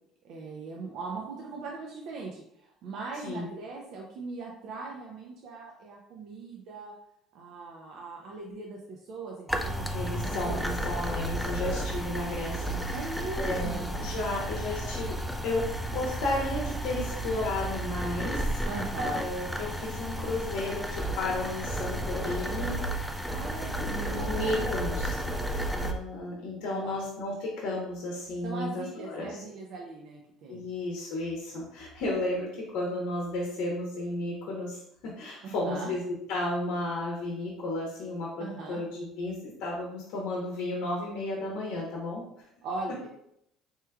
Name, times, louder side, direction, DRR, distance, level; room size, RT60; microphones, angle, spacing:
voice 1, 0.2-6.9 7.3-10.6 11.0-11.1 11.5-11.6 12.9-14.0 18.6-19.3 23.3-25.2 26.6-27.0 28.4-30.7 35.4-35.9 38.4-38.8 42.6-43.1, right 3 dB, 65° right, -1 dB, 0.5 m, -39 dB
sound 1, 9.5-25.9, right 1 dB, 5° left, 0.4 m, -32 dB
voice 2, 9.9-18.6 19.0-23.1 23.8-25.1 25.8-29.4 30.5-36.0 36.3-42.2 42.9-43.0, left 2 dB, 75° left, -3 dB, 0.7 m, -33 dB
3.4 x 3.0 x 2.2 m, 0.76 s
supercardioid pair, 90°, 0 cm